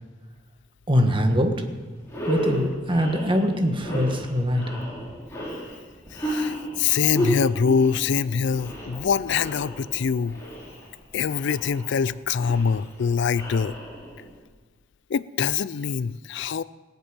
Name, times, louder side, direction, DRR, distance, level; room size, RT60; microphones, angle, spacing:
voice 1, 0.9-1.5 2.3-4.8, equal, 25° right, 5 dB, 1.5 m, -23 dB
sound 1, 1.5-1.7 2.0-14.4, equal, 15° left, 4.2 m, -33 dB
voice 2, 6.1-10.4 11.1-13.8 15.1-16.6, left 6 dB, 60° left, 18 dB, 0.4 m, -24 dB
19.5 x 8.1 x 8.8 m, 1.3 s
head